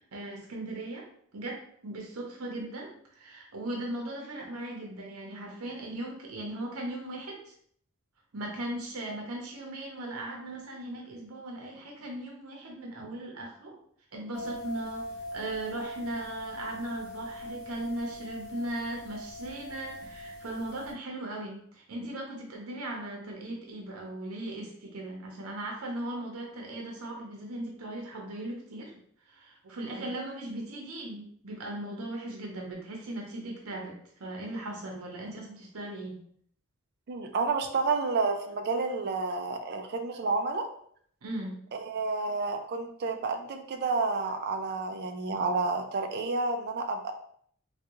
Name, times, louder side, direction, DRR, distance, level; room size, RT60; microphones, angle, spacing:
voice 1, 0.1-1.0 1.3-7.5 8.3-13.8 14.1-29.0 29.3-36.2 41.2-41.5, right 1 dB, 85° right, 0 dB, 0.8 m, -38 dB
sound 1, 14.3-20.9, left 1 dB, 50° left, 1.0 m, -41 dB
voice 2, 37.1-40.7 41.7-47.1, right 3 dB, 50° right, 4 dB, 0.4 m, -30 dB
3.4 x 2.3 x 2.9 m, 0.62 s
head